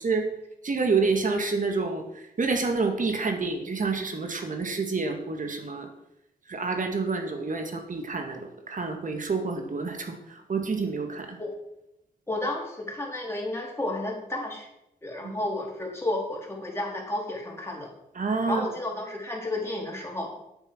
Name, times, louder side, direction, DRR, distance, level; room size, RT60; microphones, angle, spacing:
voice 1, 0.6-2.0 2.4-5.9 6.5-10.2 10.5-11.4 15.2-15.3 18.2-18.6, right 4 dB, 55° right, 5 dB, 2.1 m, -28 dB
voice 2, 12.3-14.7 15.0-17.9 18.5-20.3, left 1 dB, 15° left, -2 dB, 4.4 m, -32 dB
9.1 x 8.8 x 6.1 m, 0.83 s
cardioid pair, 65°, 16 cm